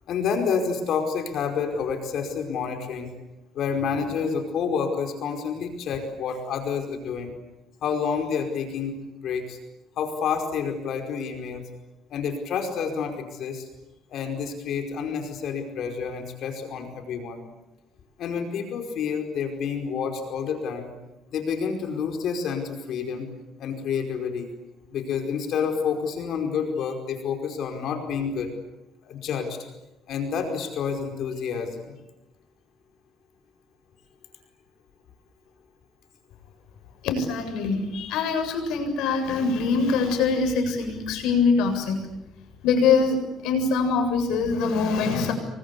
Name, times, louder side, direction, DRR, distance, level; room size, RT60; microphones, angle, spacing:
voice 1, 0.1-3.1 3.5-7.3 7.8-9.0 9.2-9.6 10.0-11.6 12.1-13.7 14.1-17.4 18.2-20.9 21.3-23.3 23.6-24.5 24.9-28.5 29.0-29.6 30.1-32.0, left 6 dB, 65° left, 4 dB, 4.9 m, -29 dB
voice 2, 37.0-42.0 42.6-45.3, left 4 dB, 85° left, 7 dB, 7.5 m, -23 dB
30.0 x 23.5 x 8.4 m, 0.95 s
cardioid pair, 125°, 0 cm